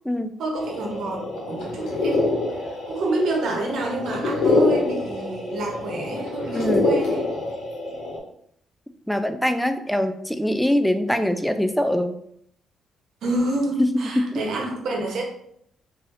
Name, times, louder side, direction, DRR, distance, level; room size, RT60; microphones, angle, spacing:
voice 1, 0.4-2.4 2.9-7.2 13.2-15.2, right 2 dB, 70° right, 0 dB, 1.0 m, -28 dB
sound 1, 0.5-8.2, left 2 dB, 80° left, 1.1 m, -25 dB
voice 2, 6.5-6.9 9.1-12.1 14.2-14.4, equal, ahead, 8 dB, 0.3 m, -23 dB
3.8 x 2.8 x 2.6 m, 0.69 s
cardioid pair, 90°, 0 cm